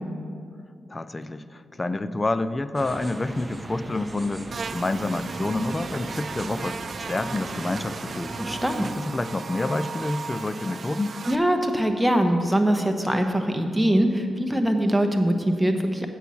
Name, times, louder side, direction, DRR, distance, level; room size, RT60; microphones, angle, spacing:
voice 1, 0.9-4.4 4.7-6.8 7.1-8.3 8.8-11.2, left 2 dB, 25° left, 13 dB, 0.4 m, -28 dB
sound 1, 2.7-8.9, right 1 dB, 25° right, 0.7 m, -38 dB
Buzz, 4.5-11.3, right 5 dB, 55° right, 0.4 m, -36 dB
voice 2, 8.4-8.8 11.3-16.1, right 1 dB, ahead, 4 dB, 1.0 m, -22 dB
8.0 x 6.3 x 7.0 m, 2.3 s
cardioid pair, 65°, 0 cm